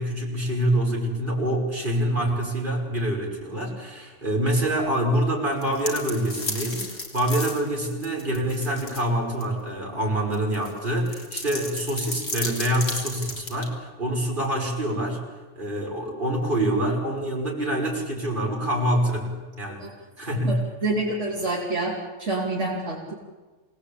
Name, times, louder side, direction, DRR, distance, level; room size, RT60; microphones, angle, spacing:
voice 1, 0.0-15.2 15.6-19.3 19.6-19.9 20.2-20.6, right 1 dB, 40° right, -2 dB, 6.2 m, -26 dB
sound 1, 5.5-9.0 9.4-9.5 10.3-13.6, left 2 dB, 85° left, 3.8 m, -33 dB
voice 2, 20.8-21.9 22.2-23.1, right 2 dB, 70° right, -4 dB, 4.1 m, -27 dB
27.0 x 19.0 x 8.7 m, 1.3 s
omnidirectional pair, 1.3 m